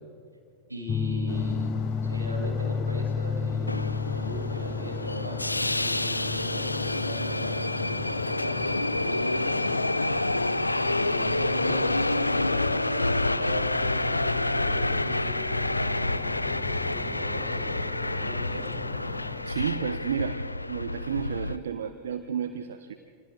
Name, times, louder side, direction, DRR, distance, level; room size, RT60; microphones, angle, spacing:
voice 1, 0.7-9.7 10.9-18.7, equal, 85° right, -2 dB, 5.3 m, -38 dB
sound 1, 0.9-12.1, left 5 dB, 20° left, 0.7 m, -33 dB
sound 2, 1.3-19.4, left 6 dB, 40° left, 2.7 m, -41 dB
Subway metro underground, 3.7-21.6, left 2 dB, 85° left, 0.4 m, -28 dB
voice 2, 19.4-20.4 20.7-22.9, right 8 dB, 65° right, 9 dB, 0.8 m, -31 dB
29.0 x 27.0 x 3.6 m, 2.3 s
figure-of-eight pair, 90°, 0 cm